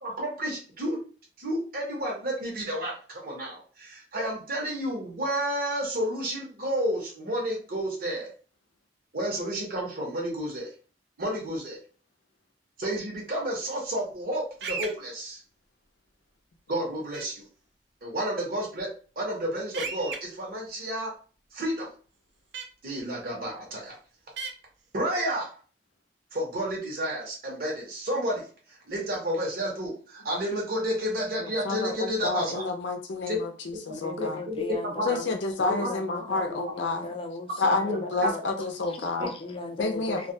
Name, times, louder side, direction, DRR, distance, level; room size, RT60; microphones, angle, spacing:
voice 1, 0.0-1.0 1.4-8.3 9.1-10.7 11.2-11.8 12.8-15.4 16.7-17.5 18.0-21.1 21.5-21.9 22.8-24.0 24.9-25.5 26.3-32.7 33.3-33.4 33.9-34.6 35.0-35.2 35.7-35.9 36.2-36.3 37.9-38.5, equal, 55° right, -2 dB, 0.9 m, -31 dB
sound 1, 14.6-14.9 17.1-17.2 19.7-20.2 22.5-22.6 24.4-24.5, right 5 dB, 75° right, 0.4 m, -33 dB
voice 2, 31.6-34.4 35.0-37.0 37.6-39.3 39.8-40.3, left 3 dB, 85° left, 5 dB, 0.5 m, -29 dB
voice 3, 33.9-38.4 38.9-40.3, left 2 dB, 30° left, 4 dB, 0.4 m, -37 dB
2.3 x 2.1 x 2.6 m, 0.38 s
head